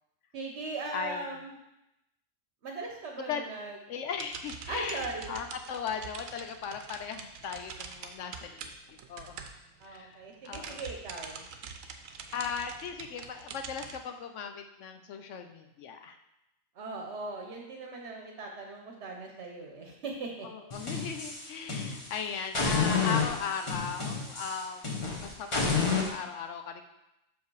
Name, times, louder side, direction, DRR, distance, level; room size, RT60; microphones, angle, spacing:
voice 1, 0.3-1.6 2.6-3.8 4.7-5.3 9.8-11.4 16.7-20.5, right 3 dB, 55° right, 1 dB, 1.1 m, -39 dB
voice 2, 0.9-1.3 3.3-3.5 3.9-9.4 9.9-10.2 10.4-10.8 12.3-16.2 20.4-24.8 25.2-26.8, left 6 dB, 65° left, 6 dB, 0.9 m, -37 dB
sound 1, 4.1-10.0 10.3-14.0, right 6 dB, 75° right, 1.1 m, -45 dB
sound 2, 20.7-22.1 22.5-26.1, left 5 dB, 25° left, 1.0 m, -30 dB
6.4 x 5.2 x 4.7 m, 0.89 s
omnidirectional pair, 1.4 m